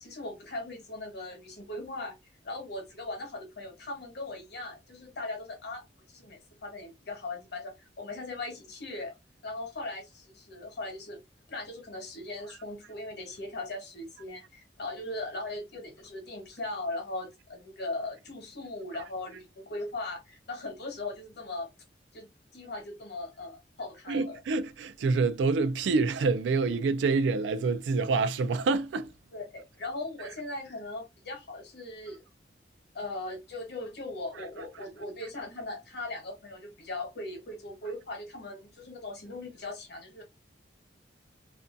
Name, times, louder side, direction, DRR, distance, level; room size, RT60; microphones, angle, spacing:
voice 1, 0.0-2.1 2.4-5.8 6.1-9.1 9.4-11.2 11.5-21.7 22.1-22.3 22.5-24.4 29.3-32.2 32.9-40.2, left 2 dB, 65° left, 1.0 m, -39 dB
voice 2, 24.1-29.1, right 4 dB, 85° right, 0.3 m, -27 dB
2.5 x 2.2 x 2.5 m
head